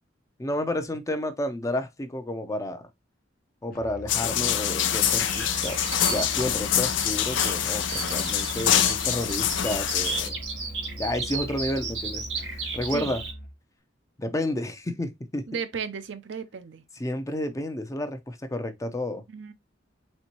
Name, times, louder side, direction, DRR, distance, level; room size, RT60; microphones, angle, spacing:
voice 1, 0.4-2.8 3.6-10.4 11.0-13.2 14.2-15.5 17.0-19.2, left 1 dB, 15° left, 0.6 m, -31 dB
Musical instrument, 3.7-13.6, equal, 50° left, 0.8 m, -41 dB
sound 1, 4.1-10.3, left 10 dB, 80° left, 0.5 m, -25 dB
Bird vocalization bird call bird song, 5.0-13.3, right 4 dB, 90° right, 2.1 m, -35 dB
voice 2, 15.5-16.8 19.3-19.5, right 6 dB, 70° right, 0.5 m, -34 dB
4.3 x 3.4 x 2.9 m
head